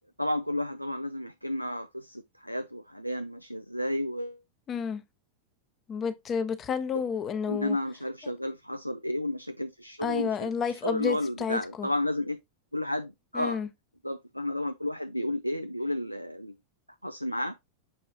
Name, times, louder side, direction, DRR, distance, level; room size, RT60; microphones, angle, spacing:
voice 1, 0.2-4.4 7.5-10.5 10.8-12.4 12.7-13.6 14.0-16.5 17.0-17.5, left 1 dB, 90° left, 0.4 m, -32 dB
voice 2, 4.7-5.0 5.9-7.8 8.2-8.3 10.0-11.9 13.3-13.7, left 6 dB, 25° left, 0.6 m, -31 dB
7.1 x 4.7 x 2.8 m
figure-of-eight pair, 90°, 0 cm